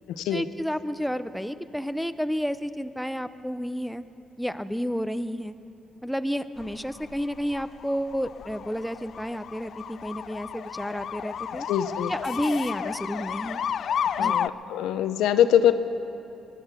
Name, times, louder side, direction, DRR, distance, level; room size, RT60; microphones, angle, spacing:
voice 1, 0.3-4.0 4.4-5.6 6.0-11.7 12.1-13.6 14.2-14.4, equal, ahead, 11 dB, 0.6 m, -31 dB
sound 1, 6.6-14.5, left 8 dB, 60° left, 0.4 m, -32 dB
voice 2, 11.7-12.1 14.0-15.7, left 10 dB, 90° left, 11 dB, 0.7 m, -23 dB
21.5 x 11.0 x 6.1 m, 2.8 s
cardioid pair, 90°, 0 cm